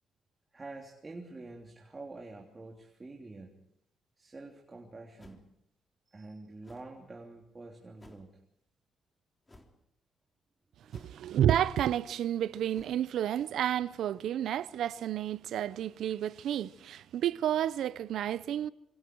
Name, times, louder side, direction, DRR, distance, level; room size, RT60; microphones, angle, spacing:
voice 1, 0.5-3.5 4.2-5.4 6.1-8.4 10.8-11.3, right 2 dB, 25° right, 3.3 m, -47 dB
sound 1, 5.2-5.6 6.6-6.9 8.0-8.3 9.5-9.8 10.9-11.4 12.7-13.0, left 1 dB, 20° left, 3.7 m, -56 dB
voice 2, 10.9-18.7, right 11 dB, 75° right, 0.7 m, -31 dB
26.5 x 24.5 x 4.7 m
cardioid pair, 90°, 0 cm